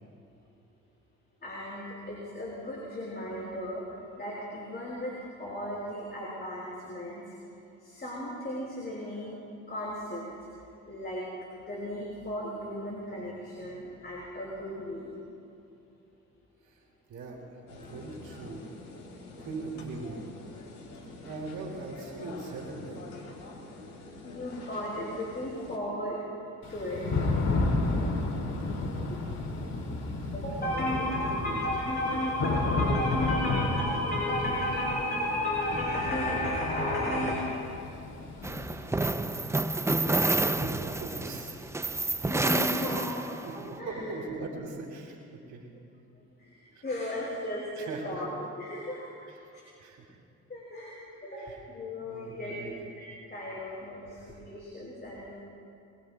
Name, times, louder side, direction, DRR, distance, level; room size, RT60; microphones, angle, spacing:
voice 1, 1.4-3.8 4.2-7.3 7.8-9.4 9.7-10.3 10.9-11.3 11.6-15.2 24.2-26.2 26.7-27.2 29.1-29.2 30.3-37.4 42.3-44.0 46.4-49.0 49.5-49.6 50.5-52.5 53.0-55.3, left 1 dB, 35° left, -6 dB, 4.9 m, -34 dB
voice 2, 17.1-18.6 19.4-20.2 21.2-23.0 29.0-30.3 30.7-32.2 40.0-41.8 42.0-42.1 42.4-45.7 46.7-46.8 47.8-48.2 49.2-49.5 49.8-50.2 51.3-51.6 52.0-52.8, right 3 dB, 75° right, -2 dB, 2.9 m, -41 dB
sound 1, 17.7-25.8, left 2 dB, 90° left, 3.2 m, -46 dB
Thunder / Rain, 26.6-42.4, left 2 dB, 60° left, 2.5 m, -33 dB
sound 2, 38.4-43.6, right 2 dB, 10° right, 0.4 m, -29 dB
25.0 x 22.0 x 2.3 m, 2.7 s
cardioid pair, 90°, 30 cm